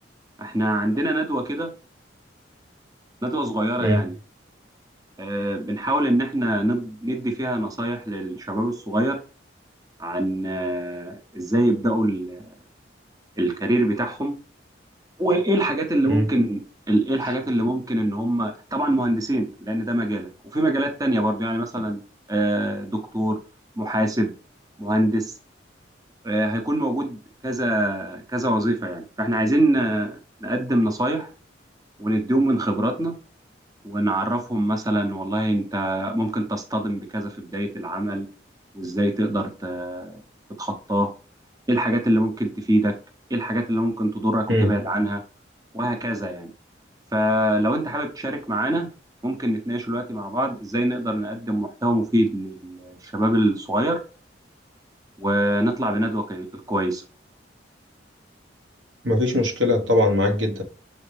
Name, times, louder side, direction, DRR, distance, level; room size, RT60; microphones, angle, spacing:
voice 1, 0.4-1.7 3.2-4.1 5.2-9.2 10.0-12.5 13.4-14.3 15.2-16.6 16.9-22.0 22.3-23.4 23.8-24.3 24.8-25.3 26.2-27.2 27.4-31.3 32.0-33.1 33.8-38.2 38.7-40.2 40.6-41.1 41.7-42.9 43.3-45.2 45.7-46.5 47.1-48.9 49.2-54.0 55.2-57.0, right 1 dB, 20° right, 0.7 m, -24 dB
voice 2, 59.0-60.6, left 1 dB, 75° right, 1.4 m, -21 dB
7.0 x 4.2 x 3.4 m
head